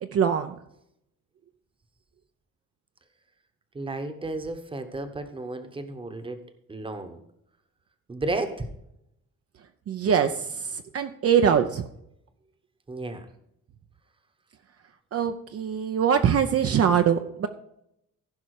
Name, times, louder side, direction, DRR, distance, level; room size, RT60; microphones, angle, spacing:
voice 1, 0.0-0.6 9.9-11.8 15.1-17.5, right 8 dB, 50° right, 7 dB, 0.7 m, -23 dB
voice 2, 3.7-6.4 6.7-7.2 8.1-8.7 12.9-13.3, right 2 dB, 15° right, 8 dB, 1.0 m, -33 dB
15.5 x 5.6 x 4.8 m, 0.78 s
cardioid pair, 145°, 31 cm